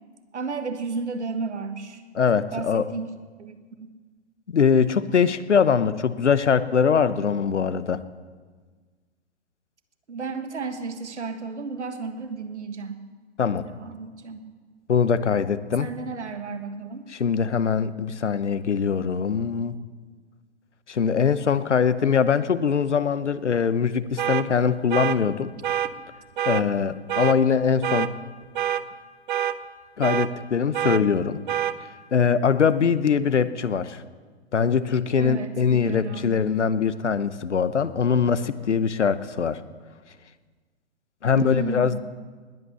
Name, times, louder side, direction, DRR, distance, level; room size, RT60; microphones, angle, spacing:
voice 1, 0.3-2.0 2.5-3.1 3.4-3.9 10.1-13.0 13.6-14.4 15.8-17.1 35.2-36.3 41.3-42.0, right 4 dB, 75° right, 8 dB, 1.6 m, -33 dB
voice 2, 2.1-2.8 4.5-8.0 13.4-13.7 14.9-15.9 17.1-19.7 20.9-25.5 26.5-28.1 30.0-31.4 32.1-34.0 34.5-39.6 41.2-42.0, left 6 dB, 80° left, 14 dB, 0.8 m, -22 dB
sound 1, 24.2-24.4 24.9-25.2 25.6-25.9 26.4-26.6 27.1-27.4 27.8-28.1 28.6-28.8 29.3-29.6 30.0-30.3 30.7-31.0 31.5-31.7, right 11 dB, 45° right, 0.7 m, -25 dB
20.0 x 8.5 x 6.8 m, 1.5 s
figure-of-eight pair, 120°, 35 cm